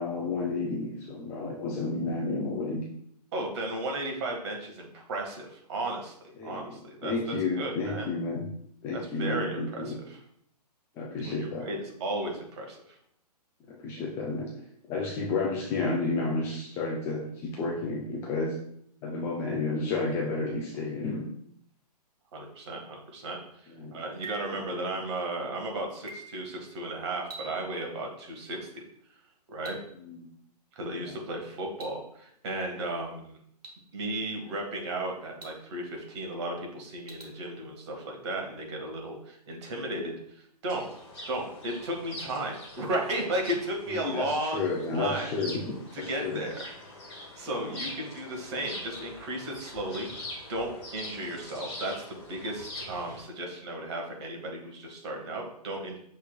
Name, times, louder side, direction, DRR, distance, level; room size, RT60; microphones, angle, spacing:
voice 1, 0.0-2.9 6.4-8.5 8.8-10.0 11.0-11.7 13.7-14.5 14.9-18.6 19.0-21.3 23.7-23.9 24.7-24.9 30.0-30.3 31.0-31.2 43.9-46.5 47.5-47.8, left 3 dB, 10° left, -2 dB, 0.3 m, -31 dB
voice 2, 3.3-6.1 6.4-8.1 8.9-10.2 11.2-12.8 22.3-23.4 23.9-28.8 29.5-29.8 30.7-33.4 33.9-40.1 40.6-40.8 41.3-45.3 45.9-46.8 47.3-56.0, right 1 dB, 45° right, 1 dB, 1.2 m, -34 dB
sound 1, 24.2-24.7 26.1-26.5 27.3-27.7 29.7-29.8 31.8-31.9 33.6-33.7 35.4-35.5 37.1-37.2, right 3 dB, 65° right, 1.3 m, -42 dB
sound 2, 40.7-53.2, left 1 dB, 40° left, 1.5 m, -44 dB
6.3 x 3.2 x 2.3 m, 0.69 s
figure-of-eight pair, 125°, 21 cm